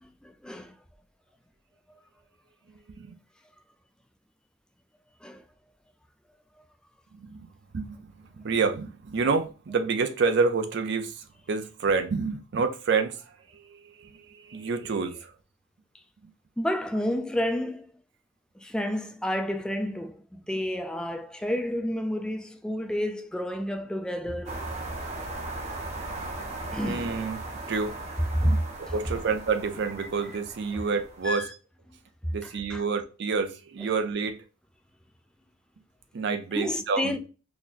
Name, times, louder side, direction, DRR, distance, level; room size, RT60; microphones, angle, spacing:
voice 1, 0.2-0.8 1.9-2.0 5.2-5.4 16.6-17.9 18.6-24.7 26.7-27.1 27.6-27.7 28.3-28.5 30.7-30.8 31.2-31.5 32.4-32.8 36.5-37.2, equal, 5° left, 0.3 m, -30 dB
voice 2, 7.1-7.5 7.7-15.3 26.4-27.4 27.7-28.0 28.4-31.5 32.3-34.4 36.1-37.2, right 4 dB, 60° right, 0.4 m, -29 dB
sound 1, 24.5-31.4, right 2 dB, 35° right, 0.8 m, -38 dB
3.9 x 2.8 x 2.5 m
head